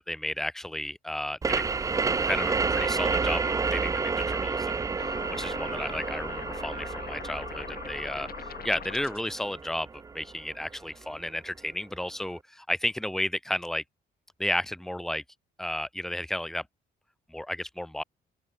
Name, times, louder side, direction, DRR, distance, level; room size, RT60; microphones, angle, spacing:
voice 1, 0.0-1.6 2.2-9.9 10.1-13.8 14.4-15.2 15.6-16.6 17.3-18.0, left 1 dB, ahead, 1.0 m, -33 dB
sound 1, 1.4-10.8, right 4 dB, 15° right, 0.3 m, -30 dB
sound 2, 5.0-9.4, left 8 dB, 50° left, 1.2 m, -41 dB
open air
cardioid pair, 90°, 20 cm